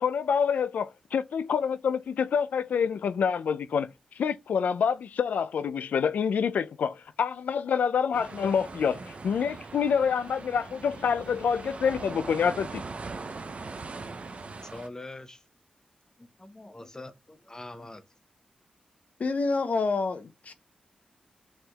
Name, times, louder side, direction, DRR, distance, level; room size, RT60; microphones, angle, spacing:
voice 1, 0.0-12.8, left 6 dB, 85° left, 0.3 m, -27 dB
sound 1, 8.1-14.9, right 3 dB, 50° right, 0.6 m, -41 dB
voice 2, 14.0-15.4 16.2-18.0, left 2 dB, 25° left, 0.8 m, -44 dB
voice 3, 19.2-20.5, left 3 dB, 65° left, 0.7 m, -27 dB
6.2 x 3.3 x 2.3 m
cardioid pair, 60°, 3 cm